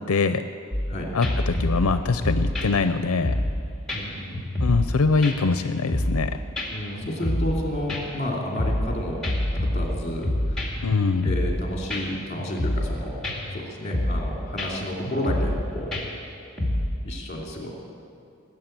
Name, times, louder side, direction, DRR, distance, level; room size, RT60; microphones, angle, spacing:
voice 1, 0.1-0.4 1.1-3.3 4.6-6.3 10.8-11.3, left 4 dB, 80° left, 9 dB, 0.5 m, -23 dB
sound 1, 0.7-0.9 1.2-3.6 3.9-4.0 4.3-4.9 5.2-6.3 6.6-6.7 7.0-7.6 7.9-8.9 9.2-10.9 11.2-11.6 11.9-12.0 12.4-12.9 13.2-13.6 13.9-14.3 14.6-14.7 15.0-15.6 15.9-17.0, left 1 dB, ahead, 2.3 m, -26 dB
voice 2, 3.9-4.6 6.7-9.2 9.5-10.8 11.2-13.2 13.5-15.9 17.0-17.7, left 1 dB, 30° left, -1 dB, 2.8 m, -31 dB
19.0 x 7.4 x 9.0 m, 2.5 s
head